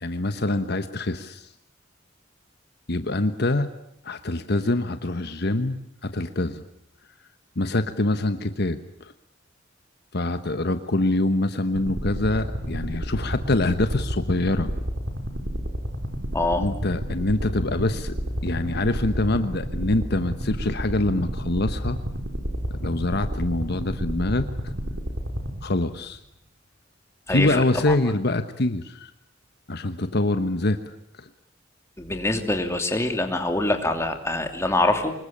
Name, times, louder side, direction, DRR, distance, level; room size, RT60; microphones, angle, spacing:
voice 1, 0.0-1.5 2.9-3.7 4.0-6.6 7.6-9.1 10.1-14.7 16.6-18.1 18.4-22.0 22.8-24.4 25.6-26.2 27.3-29.1 29.7-31.3, left 2 dB, 60° left, 9 dB, 1.3 m, -25 dB
sound 1, 11.7-26.1, equal, 80° right, 4.5 m, -31 dB
voice 2, 27.3-27.6 27.9-28.0 32.0-35.1, left 2 dB, 15° left, 5 dB, 3.0 m, -24 dB
25.5 x 22.0 x 8.7 m, 0.75 s
head